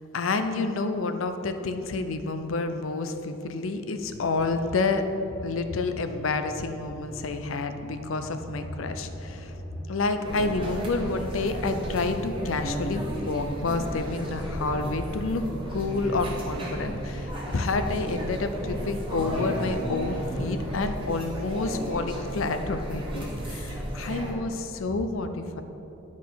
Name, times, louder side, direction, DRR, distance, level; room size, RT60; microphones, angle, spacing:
voice 1, 0.1-5.1 5.4-9.5 9.9-15.4 15.7-25.6, left 3 dB, 85° left, 8 dB, 0.6 m, -29 dB
sound 1, 4.1-20.4, left 1 dB, 35° left, 1.5 m, -44 dB
sound 2, 10.2-24.3, equal, 25° right, 1.4 m, -33 dB
11.5 x 4.8 x 4.0 m, 2.9 s
head